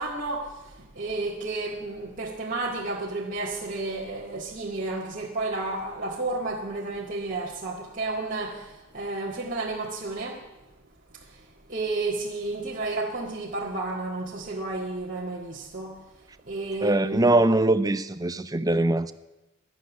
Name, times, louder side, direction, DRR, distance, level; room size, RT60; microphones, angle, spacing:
voice 1, 0.0-10.4 11.1-11.4 11.7-16.0 16.5-17.3, right 2 dB, 40° right, 1.8 m, -32 dB
voice 2, 16.8-19.1, right 2 dB, 20° right, 0.7 m, -22 dB
13.5 x 11.0 x 9.4 m
head